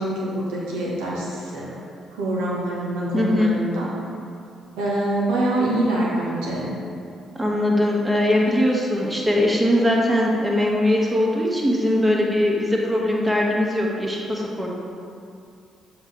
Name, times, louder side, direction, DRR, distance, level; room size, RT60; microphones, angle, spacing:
voice 1, 0.0-1.7 2.1-3.9 4.8-6.7, right 1 dB, 75° right, -5 dB, 1.4 m, -25 dB
voice 2, 3.1-3.5 7.3-14.7, left 1 dB, 20° right, -3 dB, 1.6 m, -21 dB
7.1 x 4.7 x 4.1 m, 2.4 s
hypercardioid pair, 45°, 0 cm